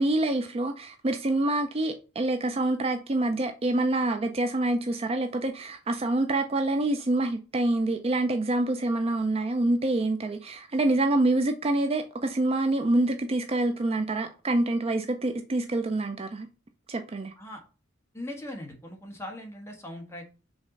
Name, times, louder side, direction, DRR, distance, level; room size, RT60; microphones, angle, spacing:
voice 1, 0.0-16.5 16.9-17.3, right 2 dB, 30° right, 0.5 m, -26 dB
voice 2, 18.1-20.3, left 1 dB, 15° left, 1.5 m, -40 dB
5.2 x 3.6 x 5.2 m
head